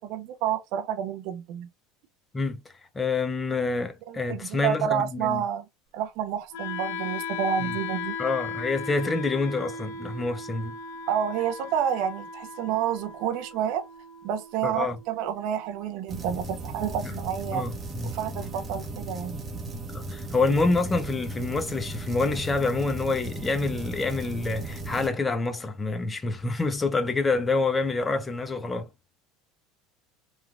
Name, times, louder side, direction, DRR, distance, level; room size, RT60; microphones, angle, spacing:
voice 1, 0.0-1.7 4.1-5.6 5.9-8.2 11.1-13.8 14.2-17.7 18.1-19.4, right 9 dB, 65° right, 0.5 m, -29 dB
voice 2, 2.9-5.4 7.6-7.7 8.2-10.8 14.6-15.0 17.5-18.1 19.9-28.9, left 3 dB, 20° left, 0.6 m, -27 dB
Wind instrument woodwind instrument, 6.5-16.5, left 4 dB, 80° left, 1.1 m, -38 dB
sound 1, 16.1-25.1, right 2 dB, 25° right, 0.8 m, -36 dB
3.1 x 2.4 x 2.3 m
supercardioid pair, 100°, 0 cm